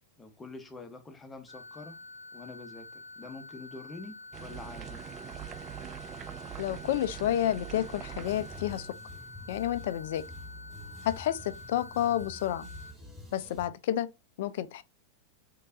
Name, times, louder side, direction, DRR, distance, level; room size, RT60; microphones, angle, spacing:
voice 1, 0.2-2.0 2.3-5.0, left 3 dB, 15° left, 0.9 m, -46 dB
sound 1, 1.5-12.9, left 3 dB, 70° right, 1.5 m, -48 dB
sound 2, 4.3-8.9, right 10 dB, 30° right, 0.3 m, -43 dB
voice 2, 6.6-8.9 9.5-10.2 11.0-12.7 13.3-14.1 14.4-14.8, left 12 dB, 55° left, 0.4 m, -30 dB
sound 3, 8.2-13.7, left 1 dB, 10° right, 2.1 m, -47 dB
3.7 x 3.7 x 2.6 m
figure-of-eight pair, 90°, 0 cm